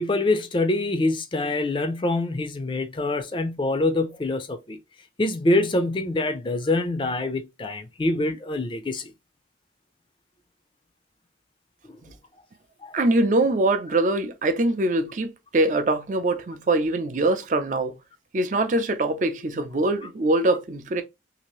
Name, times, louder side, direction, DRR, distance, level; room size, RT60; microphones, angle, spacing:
voice 1, 0.0-4.8 5.2-9.1 11.8-12.0 12.8-12.9, left 2 dB, 25° left, 0.4 m, -25 dB
voice 2, 12.9-18.0 18.3-21.0, right 2 dB, 45° right, 0.5 m, -23 dB
2.8 x 2.5 x 3.0 m
head